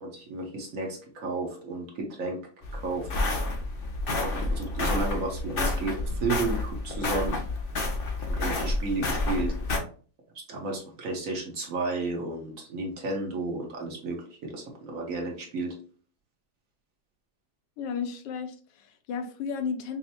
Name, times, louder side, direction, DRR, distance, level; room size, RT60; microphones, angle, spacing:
voice 1, 0.0-2.4 2.7-3.1 4.2-7.4 8.3-9.5 10.3-15.8, right 3 dB, 55° right, 0 dB, 1.2 m, -32 dB
sound 1, 2.6-9.8, left 2 dB, 55° left, 0.6 m, -29 dB
voice 2, 17.8-20.0, left 6 dB, 75° left, 7 dB, 1.3 m, -33 dB
5.5 x 2.1 x 2.8 m, 0.42 s
omnidirectional pair, 2.0 m